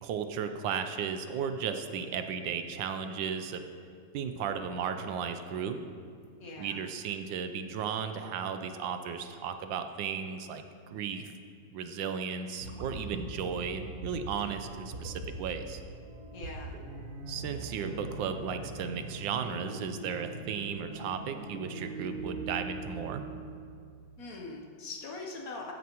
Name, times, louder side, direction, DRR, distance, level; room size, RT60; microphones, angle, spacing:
voice 1, 0.0-3.6 4.1-5.9 6.6-11.2 11.7-15.8 17.3-23.2, right 7 dB, 80° right, 8 dB, 1.4 m, -35 dB
voice 2, 6.4-6.9 16.3-16.8 24.2-25.7, left 3 dB, 55° left, 0 dB, 1.3 m, -42 dB
sound 1, 12.6-23.4, right 2 dB, 60° right, 1.5 m, -42 dB
14.0 x 9.4 x 3.0 m, 2.2 s
omnidirectional pair, 2.0 m